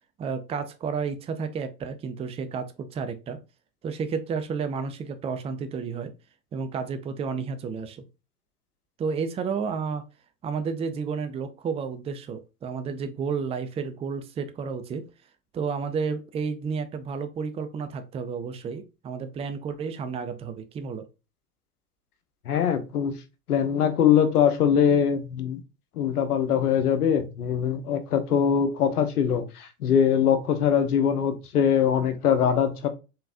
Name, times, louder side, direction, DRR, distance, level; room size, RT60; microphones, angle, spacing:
voice 1, 0.2-3.4 3.8-6.1 6.5-8.0 9.0-10.0 10.4-15.1 15.5-21.1, right 5 dB, 15° right, 0.4 m, -31 dB
voice 2, 22.5-23.1 23.5-25.6 26.0-32.9, left 8 dB, 85° left, 0.9 m, -22 dB
3.9 x 3.7 x 2.5 m
hypercardioid pair, 90°, 44 cm